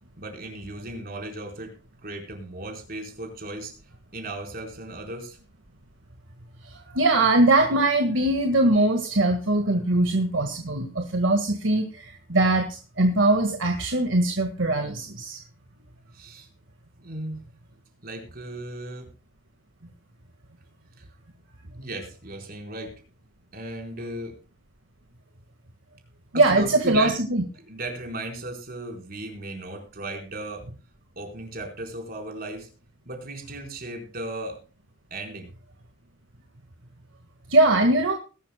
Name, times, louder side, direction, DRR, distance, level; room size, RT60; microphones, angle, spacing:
voice 1, 0.2-1.8 2.0-3.7 4.1-5.4 16.1-16.5 17.0-17.4 18.0-19.1 21.0-21.1 21.8-22.9 23.5-24.4 26.3-27.2 27.7-30.6 31.2-32.7 33.1-34.6 35.1-35.5, right 2 dB, 50° right, 2 dB, 4.3 m, -36 dB
voice 2, 6.6-15.4 26.3-27.4 37.5-38.1, right 2 dB, 70° right, 5 dB, 1.7 m, -21 dB
21.0 x 11.5 x 2.2 m, 0.35 s
head